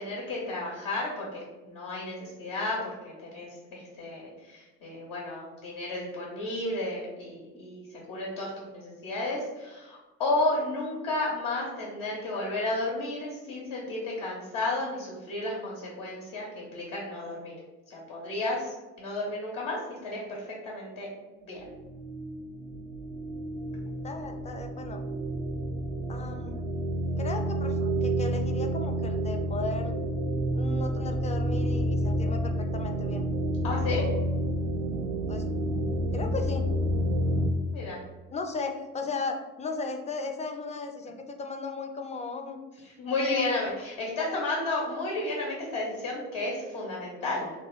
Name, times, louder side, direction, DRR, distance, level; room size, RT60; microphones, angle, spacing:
voice 1, 0.0-7.8 8.1-17.5 17.9-21.1 21.4-21.6 33.6-34.1 37.7-38.0 43.0-47.5, left 2 dB, 75° left, -3 dB, 1.0 m, -32 dB
sound 1, 21.6-37.5, right 1 dB, 80° right, 0.5 m, -29 dB
voice 2, 24.0-25.0 26.1-26.6 27.2-29.9 30.5-33.3 35.3-35.4 36.1-36.6 38.3-42.6 43.2-43.6 44.2-44.4, left 3 dB, 20° left, 5 dB, 0.4 m, -36 dB
2.9 x 2.3 x 3.1 m, 1.1 s
hypercardioid pair, 65°, 35 cm